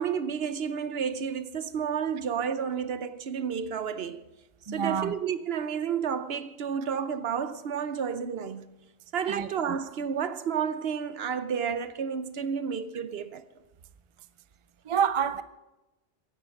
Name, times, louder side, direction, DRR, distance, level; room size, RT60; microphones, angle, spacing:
voice 1, 0.0-4.2 4.7-8.8 9.1-13.4, right 7 dB, 65° right, 0.9 m, -31 dB
voice 2, 4.7-5.1 9.3-9.8 14.8-15.4, right 7 dB, 40° right, 0.4 m, -28 dB
16.0 x 10.5 x 5.3 m
omnidirectional pair, 1.2 m